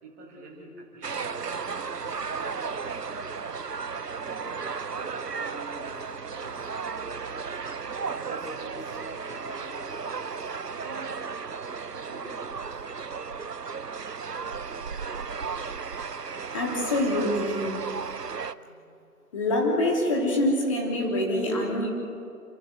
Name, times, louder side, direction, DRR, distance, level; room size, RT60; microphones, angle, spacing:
voice 1, 0.0-3.5 4.1-4.6 4.9-7.6 8.1-11.1 11.8-12.8, right 2 dB, 10° right, -3 dB, 2.2 m, -46 dB
sound 1, 1.0-18.5, right 5 dB, 90° right, 0.9 m, -34 dB
voice 2, 16.5-17.7 18.6-18.7 19.3-21.9, left 1 dB, 20° left, -2 dB, 3.2 m, -25 dB
28.5 x 13.5 x 8.1 m, 2.5 s
figure-of-eight pair, 160°, 46 cm